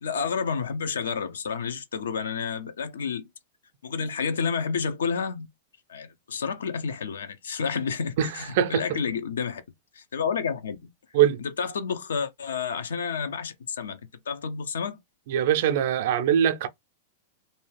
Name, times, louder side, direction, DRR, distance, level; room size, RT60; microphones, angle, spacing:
voice 1, 0.0-3.3 3.8-5.5 5.9-9.6 9.9-10.9 11.6-14.0 14.3-15.0, left 6 dB, 85° left, 0.6 m, -30 dB
voice 2, 8.2-9.0 11.1-11.4 15.3-16.7, right 9 dB, 65° right, 0.4 m, -22 dB
2.7 x 2.3 x 3.2 m
hypercardioid pair, 115°, 0 cm